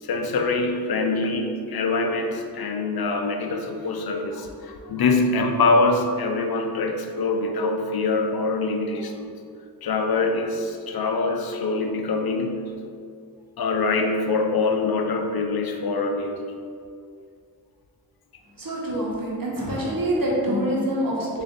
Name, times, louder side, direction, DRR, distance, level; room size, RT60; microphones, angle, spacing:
voice 1, 0.0-9.3 9.8-12.6 13.6-16.5, left 3 dB, 75° left, 4 dB, 0.5 m, -24 dB
voice 2, 18.6-21.4, right 1 dB, 65° right, -4 dB, 1.0 m, -25 dB
3.5 x 2.5 x 3.7 m, 2.3 s
wide cardioid pair, 50°, 37 cm